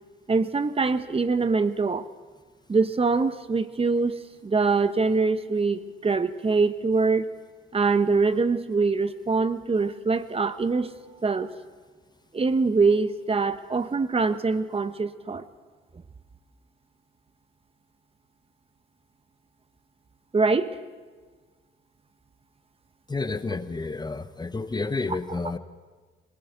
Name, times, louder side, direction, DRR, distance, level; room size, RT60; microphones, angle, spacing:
voice 1, 0.3-2.1 2.7-7.3 7.7-10.9 11.2-11.5 12.3-15.4 20.3-20.8, right 4 dB, 30° right, 12 dB, 1.1 m, -24 dB
voice 2, 23.1-25.6, left 3 dB, 20° left, 12 dB, 1.0 m, -30 dB
25.5 x 19.5 x 8.2 m, 1.4 s
cardioid pair, 90°, 20 cm